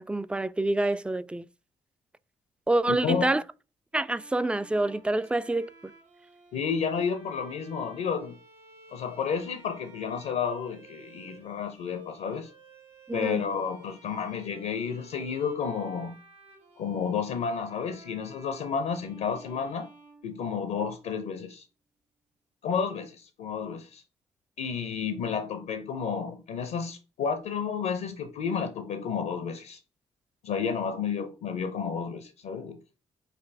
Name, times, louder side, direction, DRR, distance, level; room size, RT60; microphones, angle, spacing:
voice 1, 0.0-1.5 2.7-3.4 3.9-5.7 13.1-13.4, right 2 dB, 5° right, 0.3 m, -27 dB
voice 2, 2.9-3.4 6.5-8.4 8.9-12.5 13.1-16.2 16.8-19.9 20.2-21.6 22.6-24.0 24.6-29.8 30.4-32.8, left 6 dB, 65° left, 0.6 m, -31 dB
Bowed string instrument, 3.9-20.9, right 3 dB, 85° right, 1.2 m, -55 dB
6.0 x 2.6 x 3.4 m
hypercardioid pair, 40°, 16 cm